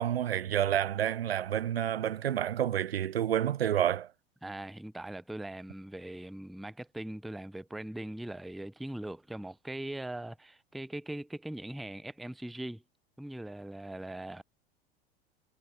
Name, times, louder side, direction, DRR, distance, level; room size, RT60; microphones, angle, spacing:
voice 1, 0.0-4.1, right 10 dB, 85° right, 0.5 m, -29 dB
voice 2, 4.4-12.8 13.2-14.4, right 1 dB, ahead, 0.3 m, -40 dB
figure-of-eight pair, 85°, 30 cm